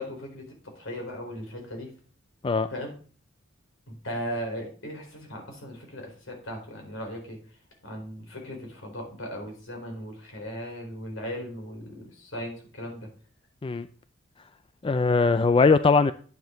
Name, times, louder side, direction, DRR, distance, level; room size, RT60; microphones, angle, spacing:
voice 1, 0.0-1.9 2.7-2.9 3.9-7.6 7.8-13.1, equal, 70° left, 1 dB, 4.4 m, -37 dB
voice 2, 14.8-16.1, left 4 dB, 25° left, 12 dB, 0.4 m, -20 dB
9.6 x 9.5 x 3.9 m, 0.42 s
head